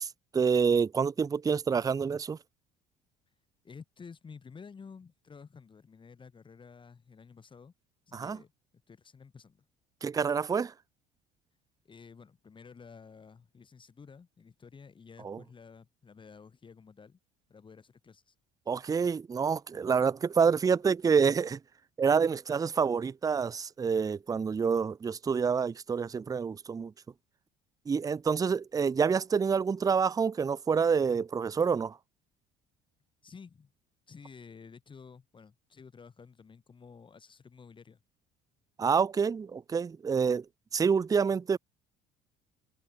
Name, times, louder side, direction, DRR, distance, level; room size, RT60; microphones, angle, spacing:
voice 1, 0.0-2.4 8.1-8.4 10.0-10.7 15.2-15.4 18.7-21.6 22.0-26.9 27.9-32.0 38.8-40.4 40.7-41.6, right 6 dB, 20° right, 0.5 m, -27 dB
voice 2, 3.6-7.7 8.1-8.5 8.9-9.7 11.8-17.2 17.5-18.4 27.9-28.0 33.2-33.7 34.1-38.0, left 5 dB, 30° left, 3.7 m, -52 dB
cardioid pair, 105°, 18 cm